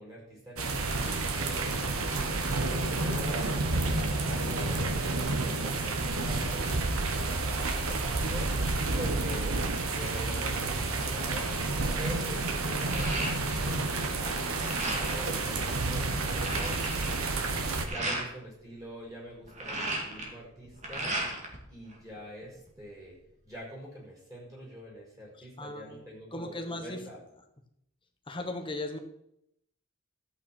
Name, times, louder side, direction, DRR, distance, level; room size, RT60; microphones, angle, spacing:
voice 1, 0.0-2.4 2.9-4.9 5.3-8.5 8.9-9.6 9.9-11.5 12.0-14.4 14.8-16.8 17.8-21.2 21.7-23.1 23.4-27.2, equal, 15° right, -5 dB, 5.2 m, -44 dB
sound 1, 0.6-17.8, right 3 dB, 70° right, 1.4 m, -30 dB
sound 2, 12.6-13.8 14.1-15.3 15.8-15.9 16.1-18.3 19.3-21.6 21.9-22.8, right 2 dB, 30° right, 2.2 m, -35 dB
voice 2, 25.4-26.0 26.3-27.0 28.3-29.0, left 2 dB, 25° left, 5 dB, 1.3 m, -37 dB
13.0 x 8.5 x 4.5 m, 0.78 s
head